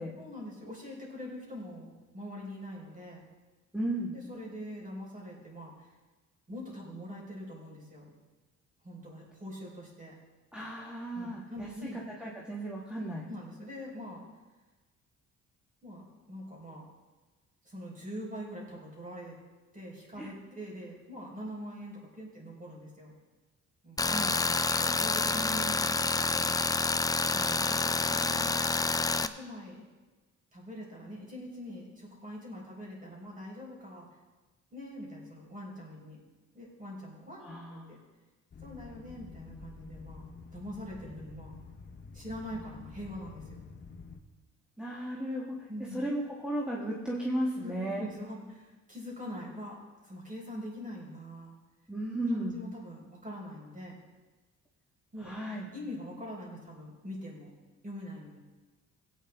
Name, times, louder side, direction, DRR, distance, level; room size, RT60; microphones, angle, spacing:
voice 1, 0.2-3.2 4.1-5.9 6.5-8.1 8.8-10.1 11.1-12.0 13.2-14.2 15.8-16.8 17.6-19.4 19.7-23.1 23.8-24.0 24.8-26.6 27.3-28.6 29.2-29.8 30.5-34.1 34.7-36.2 36.5-38.0 38.6-40.3 40.5-41.5 42.1-43.6 45.7-46.0 47.6-51.6 52.3-54.0 55.1-55.3 55.7-57.5 57.8-58.4, equal, 25° right, -3 dB, 4.6 m, -43 dB
voice 2, 3.7-4.1 10.5-13.3 20.2-20.3 24.0-24.4 37.4-37.9 44.8-48.0 51.9-52.6 55.2-55.7, right 1 dB, 5° right, -5 dB, 1.6 m, -35 dB
Tools, 24.0-29.3, left 3 dB, 10° left, 0.4 m, -28 dB
sound 1, 38.5-44.2, left 4 dB, 35° left, 1.1 m, -48 dB
17.0 x 8.9 x 3.6 m, 1.2 s
cardioid pair, 90°, 30 cm